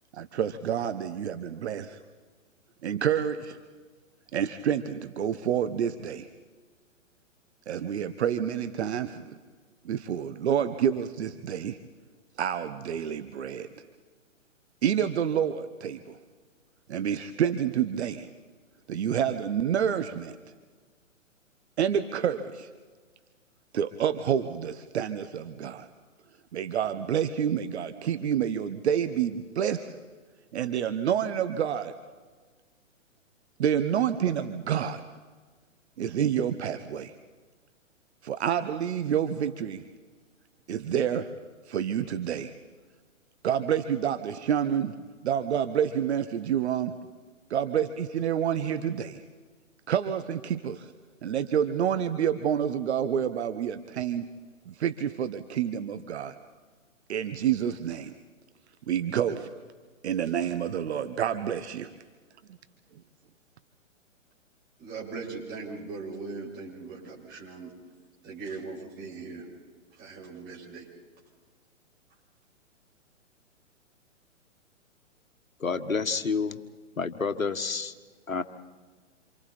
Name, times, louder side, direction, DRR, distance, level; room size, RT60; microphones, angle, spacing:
voice 1, 0.1-2.0 2.8-3.6 4.3-6.3 7.7-9.3 9.8-11.8 12.4-13.7 14.8-16.2 16.9-18.3 18.9-20.4 21.8-22.7 23.7-25.9 26.5-30.0 30.5-31.9 33.6-35.0 36.0-37.1 38.2-39.8 40.7-41.3 41.7-42.5 43.4-45.0 45.2-46.9 47.5-49.2 49.9-50.9 51.2-54.3 54.7-56.3 57.1-58.1 58.9-59.5 60.0-61.9, right 9 dB, 55° right, 10 dB, 1.2 m, -28 dB
voice 2, 64.8-67.7 68.2-69.4 70.0-70.9, right 4 dB, 25° right, -3 dB, 7.9 m, -39 dB
voice 3, 75.6-76.6 77.0-77.9 78.3-78.4, left 5 dB, 85° left, 10 dB, 1.5 m, -29 dB
28.0 x 28.0 x 4.3 m, 1.5 s
figure-of-eight pair, 125°, 39 cm